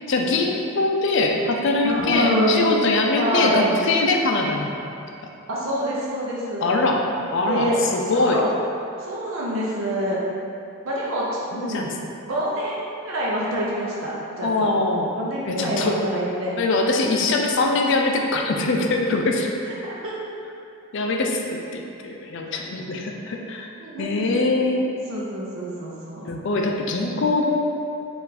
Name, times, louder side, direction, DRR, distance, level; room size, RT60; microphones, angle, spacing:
voice 1, 0.1-4.7 6.6-8.4 11.5-11.9 14.4-15.2 15.4-16.0 16.6-19.5 20.9-23.7 24.0-24.9 26.3-27.6, left 2 dB, 55° left, 2 dB, 0.4 m, -22 dB
voice 2, 1.8-2.7 3.1-3.7 5.5-8.5 9.0-10.2 10.8-11.9 12.2-12.8 13.0-14.7 15.1-16.5 17.1-17.3 19.6-20.1 23.8-24.3 24.6-24.7 25.1-26.3, equal, 65° right, -5 dB, 0.6 m, -26 dB
4.3 x 2.5 x 4.0 m, 2.6 s
head